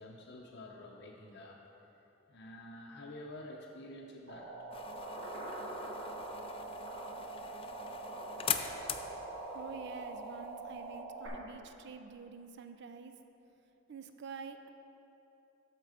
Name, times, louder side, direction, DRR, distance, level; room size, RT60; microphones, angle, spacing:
voice 1, 0.0-1.6 2.3-4.5, left 1 dB, 60° left, -2 dB, 0.6 m, -49 dB
sound 1, 4.3-11.3, right 2 dB, 80° right, 1.8 m, -43 dB
sound 2, 4.7-11.0, left 8 dB, 30° left, 0.3 m, -42 dB
voice 2, 9.5-13.1 13.9-14.7, right 5 dB, 60° right, 8 dB, 0.5 m, -47 dB
12.5 x 4.5 x 4.9 m, 3.0 s
head